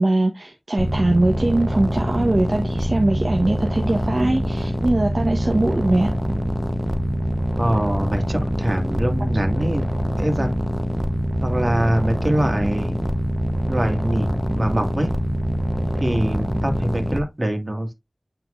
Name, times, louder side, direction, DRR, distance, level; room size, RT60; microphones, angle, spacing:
voice 1, 0.0-6.1, right 2 dB, 60° right, 1.1 m, -21 dB
sound 1, 0.8-17.2, equal, ahead, 1.0 m, -24 dB
voice 2, 7.6-9.9 10.1-10.5 11.4-13.0 13.7-15.1 16.0-17.9, right 1 dB, 45° right, 2.0 m, -24 dB
9.8 x 4.5 x 2.5 m
wide cardioid pair, 50°, 0 cm